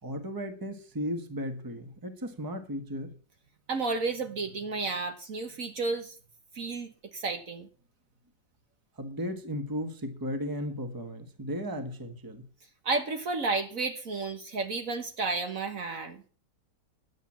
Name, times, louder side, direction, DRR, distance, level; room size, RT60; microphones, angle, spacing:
voice 1, 0.0-3.1 9.0-12.5, equal, 15° right, 8 dB, 1.3 m, -35 dB
voice 2, 3.7-6.1 6.5-7.7 12.8-16.2, right 3 dB, 55° right, 6 dB, 1.5 m, -32 dB
11.0 x 7.5 x 7.3 m, 0.41 s
omnidirectional pair, 1.9 m